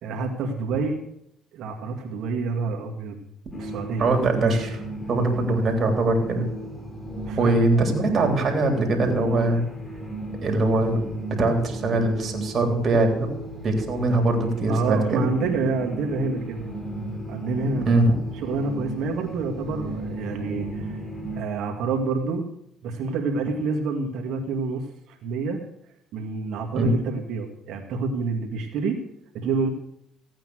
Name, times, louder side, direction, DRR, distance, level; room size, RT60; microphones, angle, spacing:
voice 1, 0.0-1.0 1.5-3.2 3.6-4.1 4.4-4.6 7.2-7.9 14.7-16.6 17.3-18.0 18.3-21.0 21.4-22.4 22.8-25.6 26.1-29.0 29.3-29.7, right 4 dB, 70° right, 2 dB, 2.2 m, -28 dB
sound 1, 3.5-21.4, right 1 dB, 30° left, 3.7 m, -35 dB
voice 2, 4.0-4.8 5.1-6.4 7.4-9.6 10.4-11.0 11.3-13.3 13.6-15.2 17.9-18.1 26.7-26.9, right 2 dB, 45° right, 3 dB, 3.6 m, -22 dB
15.5 x 9.0 x 6.4 m, 0.73 s
supercardioid pair, 80°, 0 cm